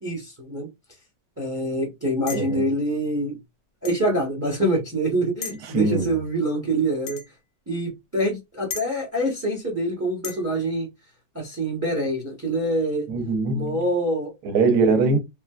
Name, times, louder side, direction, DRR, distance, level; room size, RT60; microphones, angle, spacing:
voice 1, 0.0-0.7 1.4-3.4 3.8-7.2 7.7-10.9 11.3-13.1 13.5-14.3, right 1 dB, 15° right, 0.5 m, -25 dB
sound 1, 2.3-2.6 3.8-4.0 5.4-5.7 7.1-7.3 8.7-8.9 10.2-10.4, left 6 dB, 75° left, 1.3 m, -35 dB
voice 2, 2.3-2.7 5.6-6.1 13.1-13.8 14.4-15.2, right 3 dB, 70° right, 1.2 m, -22 dB
3.6 x 2.2 x 2.3 m
omnidirectional pair, 1.9 m